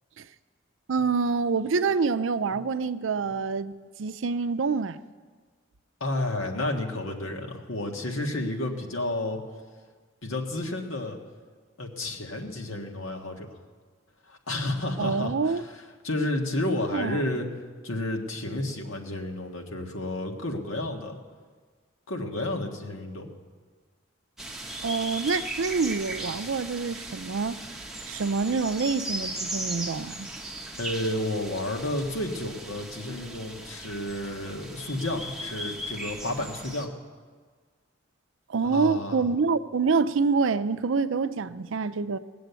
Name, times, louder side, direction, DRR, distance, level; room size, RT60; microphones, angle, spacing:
voice 1, 0.9-3.7 4.0-5.0 15.0-15.6 16.9-17.2 24.8-27.6 28.1-30.3 38.5-42.2, right 4 dB, 75° right, 0.5 m, -26 dB
voice 2, 6.0-9.4 10.2-11.2 11.8-13.5 14.3-17.5 17.8-21.2 22.1-23.3 30.8-36.9 38.6-39.3, left 1 dB, 85° left, 1.7 m, -31 dB
sound 1, 24.4-36.9, right 1 dB, ahead, 0.9 m, -37 dB
18.5 x 7.7 x 8.1 m
head